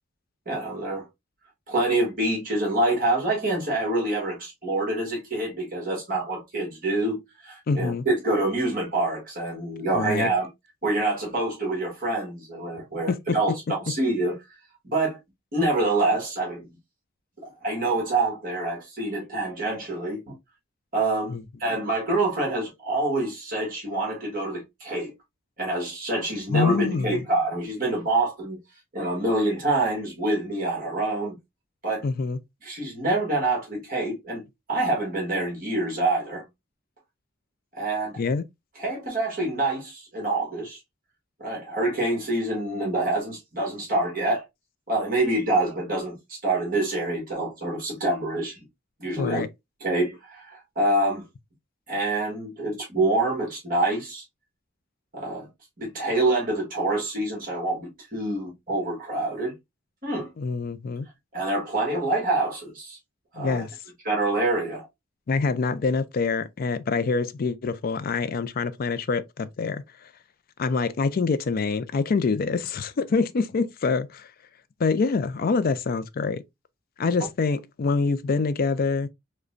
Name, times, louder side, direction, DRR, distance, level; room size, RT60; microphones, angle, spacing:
voice 1, 0.4-1.0 1.7-10.5 10.8-14.3 14.8-15.2 15.5-16.7 17.6-20.4 20.9-25.1 25.6-28.6 28.9-31.3 31.8-32.0 32.6-36.4 37.7-38.2 38.8-40.8 41.4-44.4 44.9-48.6 49.0-49.4 49.8-51.2 51.9-54.2 55.1-55.5 55.8-59.5 60.0-60.3 61.3-63.0 63.3-63.7 64.0-64.9, right 2 dB, 45° right, 1.5 m, -26 dB
voice 2, 7.7-8.0 9.9-10.3 13.1-13.4 21.3-21.4 26.5-27.2 32.0-32.4 38.2-38.4 49.2-49.5 60.4-61.1 63.4-63.7 65.3-69.8 70.6-74.3 74.8-76.4 77.0-79.1, left 4 dB, 45° left, 0.4 m, -25 dB
4.9 x 2.2 x 2.5 m
head